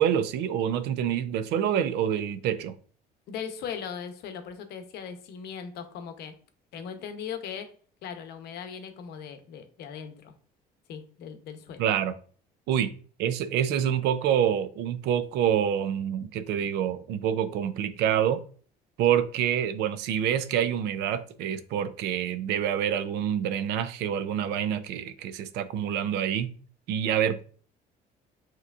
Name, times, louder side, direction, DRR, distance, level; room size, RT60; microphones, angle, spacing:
voice 1, 0.0-2.7 11.8-12.2 12.7-12.9 13.2-18.4 19.0-26.5 26.9-27.4, right 9 dB, 85° right, 0.4 m, -27 dB
voice 2, 3.3-6.3 6.7-7.7 8.0-10.3 10.9-11.8, left 7 dB, 75° left, 0.7 m, -39 dB
5.7 x 3.0 x 2.3 m
cardioid pair, 110°, 17 cm